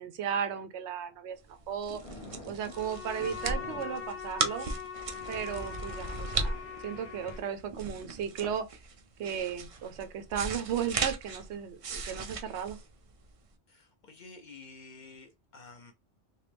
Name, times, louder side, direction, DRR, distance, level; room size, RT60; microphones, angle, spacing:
voice 1, 0.0-2.0 2.5-4.7 5.3-8.7 9.2-12.8, right 8 dB, 75° right, 0.9 m, -35 dB
sound 1, 0.9-1.3 1.6-4.1 4.4-4.6 5.1-7.4, left 1 dB, 35° left, 1.0 m, -50 dB
sound 2, 1.5-13.5, right 4 dB, 55° right, 0.3 m, -37 dB
Bowed string instrument, 2.7-7.5, left 8 dB, 85° left, 1.2 m, -42 dB
voice 2, 13.7-15.9, left 3 dB, 50° left, 0.6 m, -51 dB
3.0 x 2.7 x 3.3 m
omnidirectional pair, 1.2 m